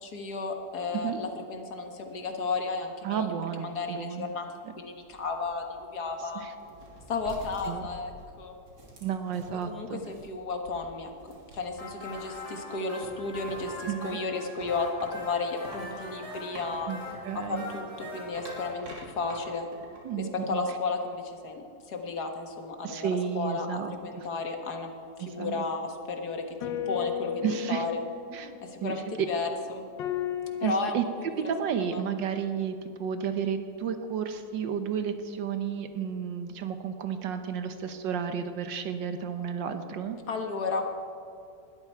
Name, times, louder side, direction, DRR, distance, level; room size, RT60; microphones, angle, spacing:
voice 1, 0.0-3.3 3.6-6.4 7.1-8.1 8.4-8.6 9.7-17.0 17.3-19.7 20.2-23.1 23.3-24.9 25.2-28.0 28.6-29.8 30.6-31.0 31.3-31.4 31.9-32.0 40.3-40.8, left 4 dB, 60° left, 3 dB, 2.0 m, -33 dB
voice 2, 3.0-4.3 6.3-6.5 7.6-7.8 9.0-10.0 13.9-14.2 16.9-17.0 17.2-17.7 20.0-20.6 22.8-24.3 25.2-25.6 27.4-27.9 28.3-28.6 28.8-29.3 30.6-31.0 31.5-40.2, right 8 dB, 80° right, 8 dB, 1.6 m, -32 dB
sound 1, 5.0-12.3 13.0-20.0, right 1 dB, 60° right, 3.4 m, -48 dB
sound 2, 11.8-18.7, left 1 dB, 20° left, 4.2 m, -42 dB
sound 3, 26.6-29.3 30.0-30.9, left 9 dB, 85° left, 1.5 m, -35 dB
20.0 x 13.5 x 4.6 m, 2.4 s
omnidirectional pair, 1.9 m